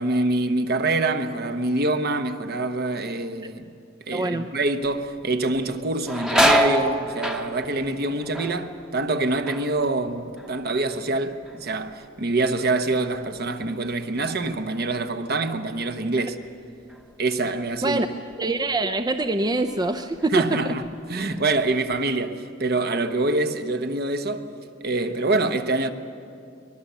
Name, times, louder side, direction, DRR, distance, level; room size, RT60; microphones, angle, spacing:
voice 1, 0.0-3.7 4.1-16.4 17.2-18.0 20.3-20.8 21.1-24.5 24.8-25.9, right 2 dB, 50° right, 1.0 m, -25 dB
voice 2, 4.1-4.5 17.8-18.1 18.4-20.7, right 2 dB, 20° right, 0.6 m, -24 dB
sound 1, 5.2-5.3 5.6-11.2 11.4-12.1 12.5-15.5 15.8-15.9 16.9-17.1 17.5-18.6 19.1-19.3 19.9-20.5 20.8-22.0, equal, 5° right, 1.0 m, -28 dB
23.0 x 21.0 x 6.9 m
head